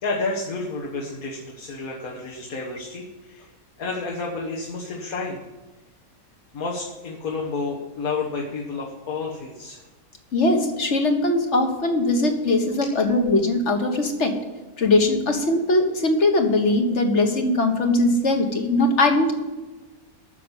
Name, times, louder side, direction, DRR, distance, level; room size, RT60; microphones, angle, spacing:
voice 1, 0.0-3.5 3.8-5.4 6.5-9.8, left 3 dB, 65° left, -2 dB, 1.8 m, -30 dB
voice 2, 10.3-14.3 14.8-19.3, left 2 dB, 50° left, 4 dB, 1.7 m, -20 dB
9.4 x 6.8 x 8.7 m, 1.2 s
omnidirectional pair, 1.6 m